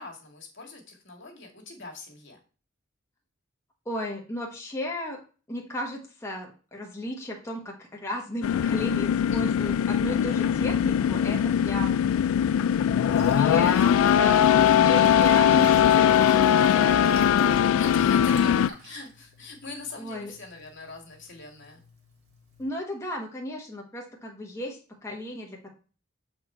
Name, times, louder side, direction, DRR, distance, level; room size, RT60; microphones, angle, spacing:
voice 1, 0.0-2.4 9.3-9.4 17.7-21.8, left 3 dB, 60° left, 1 dB, 1.9 m, -42 dB
voice 2, 3.8-5.2 5.5-12.1 13.0-17.5 19.9-20.3 22.6-25.8, left 1 dB, 15° left, -1 dB, 1.1 m, -35 dB
sound 1, 8.4-18.7, left 9 dB, 85° left, 0.3 m, -21 dB
Liquid, 12.1-22.6, right 3 dB, 55° right, 1.9 m, -46 dB
7.4 x 4.5 x 4.3 m, 0.37 s
head